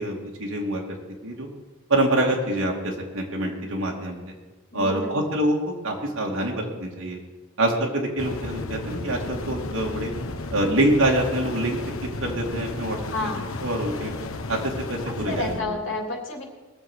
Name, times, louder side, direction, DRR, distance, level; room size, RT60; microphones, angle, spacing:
voice 1, 0.0-1.5 1.9-4.2 4.7-7.2 7.6-10.1 10.5-11.8 12.2-13.0 13.6-14.1 14.5-15.7, right 1 dB, 80° right, -1 dB, 2.5 m, -25 dB
voice 2, 4.7-5.3 13.1-13.5 15.1-16.4, left 2 dB, 65° left, 1 dB, 3.1 m, -30 dB
sound 1, 8.2-15.6, left 2 dB, 85° left, 1.0 m, -33 dB
21.0 x 7.1 x 6.3 m, 1.2 s
head